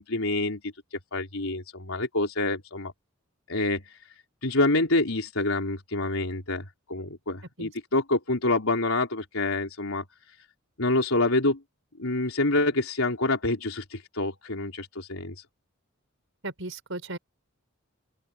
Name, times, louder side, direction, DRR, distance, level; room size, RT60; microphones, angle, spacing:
voice 1, 0.0-2.9 3.5-4.0 4.4-10.1 10.8-11.6 12.0-15.4, left 2 dB, 80° left, 3.9 m, -27 dB
voice 2, 16.4-17.2, right 2 dB, 65° right, 6.7 m, -36 dB
open air
head